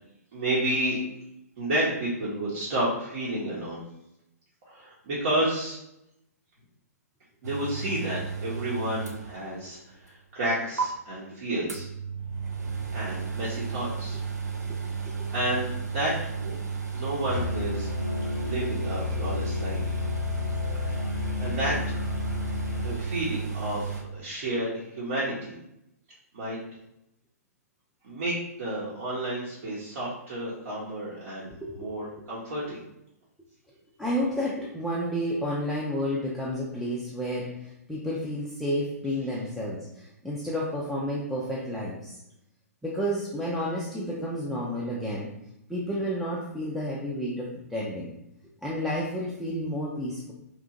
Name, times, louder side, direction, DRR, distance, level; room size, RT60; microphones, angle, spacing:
voice 1, 0.3-1.0 1.6-3.8 4.7-5.8 7.4-11.9 12.9-14.2 15.3-16.5 16.9-17.9 18.4-20.0 20.8-21.8 22.8-25.6 26.3-26.6 28.0-32.8, right 1 dB, 55° right, -7 dB, 0.9 m, -31 dB
sound 1, 7.4-9.8 10.1-10.2 10.8-10.9 11.7-24.0, right 5 dB, 90° right, 0.5 m, -33 dB
Musical instrument, 17.3-22.9, left 6 dB, 90° left, 0.6 m, -32 dB
voice 2, 34.0-42.2 42.8-45.3 45.7-48.1 48.6-50.3, equal, ahead, -6 dB, 0.3 m, -31 dB
2.9 x 2.4 x 2.5 m, 0.83 s
hypercardioid pair, 125°, 9 cm